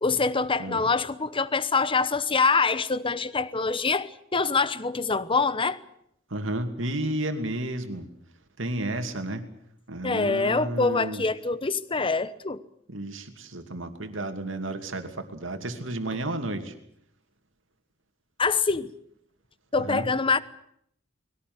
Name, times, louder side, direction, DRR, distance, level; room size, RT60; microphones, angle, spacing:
voice 1, 0.0-5.8 10.0-12.6 18.4-18.9 19.7-20.4, left 4 dB, 25° left, 1.0 m, -25 dB
voice 2, 6.3-8.1 8.6-9.5 9.9-11.2 12.9-16.7 19.8-20.1, right 1 dB, 75° right, 2.6 m, -32 dB
21.5 x 17.5 x 9.5 m
head